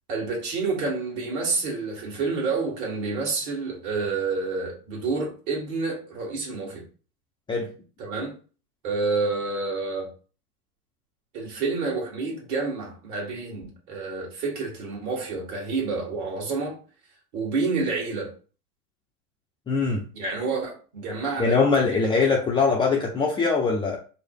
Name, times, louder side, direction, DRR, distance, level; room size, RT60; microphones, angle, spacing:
voice 1, 0.1-6.8 8.0-8.3 8.8-10.1 11.3-16.8 17.3-18.3 20.1-21.6 21.9-22.0, right 4 dB, 40° right, 1.6 m, -29 dB
voice 2, 19.7-20.0 21.4-24.0, left 4 dB, 10° left, 0.5 m, -22 dB
4.7 x 2.0 x 3.5 m
figure-of-eight pair, 90°, 46 cm